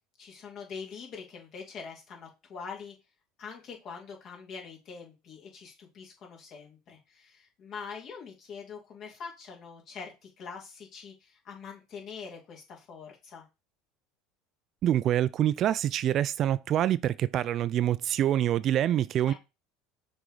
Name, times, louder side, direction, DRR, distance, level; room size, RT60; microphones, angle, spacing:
voice 1, 0.2-2.9 3.4-13.4 19.2-19.3, left 5 dB, 50° left, 2.7 m, -44 dB
voice 2, 14.8-19.3, right 11 dB, 50° right, 0.3 m, -26 dB
6.2 x 3.5 x 4.9 m
hypercardioid pair, 90°, 0 cm